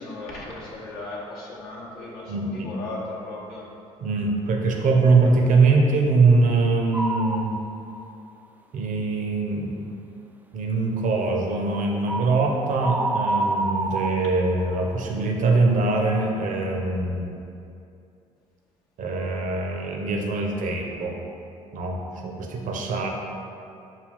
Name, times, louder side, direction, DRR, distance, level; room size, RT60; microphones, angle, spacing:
voice 1, 0.0-3.7, left 2 dB, 65° left, -5 dB, 0.8 m, -36 dB
voice 2, 2.3-2.7 4.0-7.6 8.7-9.7 10.5-17.4 19.0-21.2 21.7-23.1, right 3 dB, 50° right, 1 dB, 0.7 m, -22 dB
sound 1, 6.9-7.5 8.0-8.1 12.1-12.4 12.8-14.7, right 2 dB, 10° right, 0.3 m, -27 dB
5.5 x 2.3 x 3.4 m, 2.6 s
hypercardioid pair, 55°, 17 cm